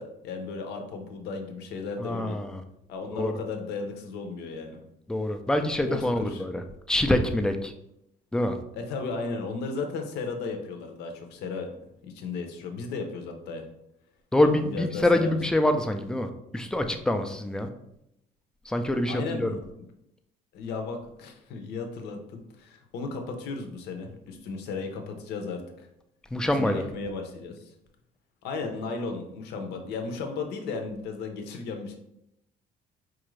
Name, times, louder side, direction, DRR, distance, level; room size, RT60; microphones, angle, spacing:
voice 1, 0.0-2.4 2.9-4.8 5.9-6.4 8.7-11.7 12.0-13.7 14.4-15.6 19.1-19.6 20.5-25.9 26.5-27.7 28.4-32.0, left 4 dB, 80° left, 5 dB, 0.7 m, -35 dB
voice 2, 2.0-2.6 3.1-3.3 5.1-6.6 6.9-7.7 8.3-8.6 14.3-17.7 18.7-19.5 26.3-26.8, left 1 dB, 5° left, 6 dB, 0.3 m, -25 dB
4.5 x 2.5 x 3.1 m, 0.82 s
cardioid pair, 110°, 17 cm